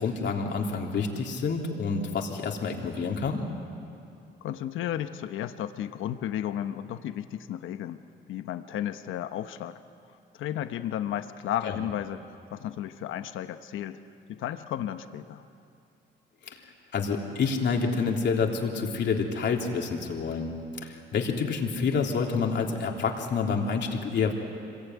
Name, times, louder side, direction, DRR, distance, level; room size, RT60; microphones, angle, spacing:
voice 1, 0.0-3.5 11.6-11.8 16.9-20.5 20.8-24.3, left 5 dB, 65° left, 1 dB, 3.4 m, -28 dB
voice 2, 4.4-8.0 8.3-9.8 10.3-14.0 14.3-15.4, left 11 dB, 85° left, 10 dB, 1.0 m, -33 dB
26.0 x 22.0 x 9.5 m, 2.6 s
cardioid pair, 90°, 20 cm